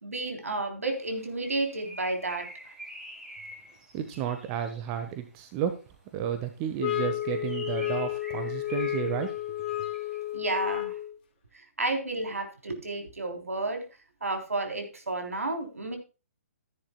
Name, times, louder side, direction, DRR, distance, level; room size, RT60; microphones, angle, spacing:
voice 1, 0.0-2.7 10.3-11.0 11.5-13.9 14.2-16.0, right 2 dB, 70° right, 6 dB, 3.5 m, -32 dB
Bird, 1.0-5.1 6.7-10.3, equal, 5° right, 3.1 m, -47 dB
voice 2, 3.9-5.8 6.1-9.3, right 9 dB, 25° right, 8 dB, 1.2 m, -32 dB
sound 1, 6.8-11.2, left 14 dB, 35° left, 1.6 m, -32 dB
14.5 x 10.5 x 2.2 m, 0.31 s
figure-of-eight pair, 130°, 8 cm